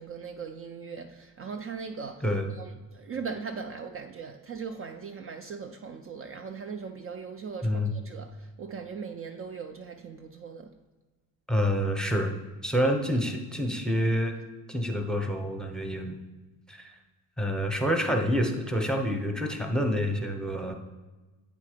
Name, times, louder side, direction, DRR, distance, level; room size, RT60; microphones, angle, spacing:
voice 1, 0.0-2.2 2.6-10.7 20.7-20.8, right 5 dB, 40° right, 0.4 m, -39 dB
voice 2, 7.6-7.9 11.5-12.3 12.6-14.3 14.7-16.2 16.7-16.9 17.4-20.7, equal, ahead, 0.7 m, -27 dB
8.4 x 3.7 x 4.9 m
cardioid pair, 125°, 36 cm